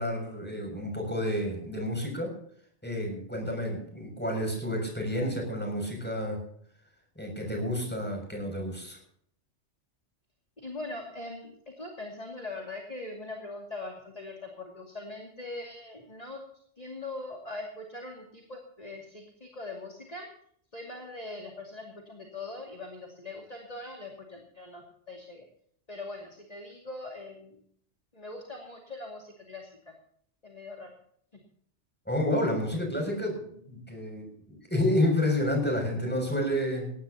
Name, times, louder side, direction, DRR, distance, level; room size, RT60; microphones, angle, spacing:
voice 1, 0.0-2.3 2.8-6.4 7.1-9.0 32.1-36.9, left 1 dB, 10° left, 2 dB, 6.6 m, -30 dB
voice 2, 10.6-16.4 16.8-20.3 20.7-25.4 25.9-27.6 28.1-29.9 30.4-30.9 31.3-31.4, left 2 dB, 30° left, 0 dB, 2.6 m, -41 dB
19.0 x 17.5 x 2.9 m, 0.62 s
omnidirectional pair, 1.2 m